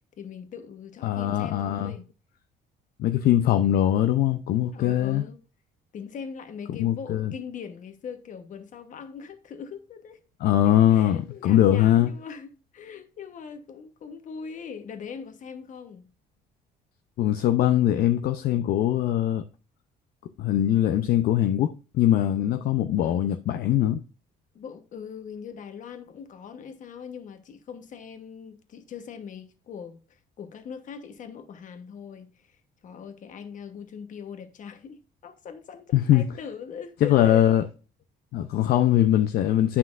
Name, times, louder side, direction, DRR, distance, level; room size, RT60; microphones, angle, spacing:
voice 1, 0.2-2.1 4.7-5.4 5.9-10.2 10.6-16.1 23.0-23.3 24.5-30.0 30.4-32.6 32.8-37.4, left 6 dB, 50° left, 1.1 m, -41 dB
voice 2, 1.0-1.9 3.0-5.3 6.8-7.3 10.4-12.1 17.2-19.4 20.4-24.0 35.9-36.2 37.0-37.6 38.3-39.8, left 12 dB, 65° left, 0.5 m, -22 dB
9.7 x 5.6 x 2.5 m
cardioid pair, 110°, 17 cm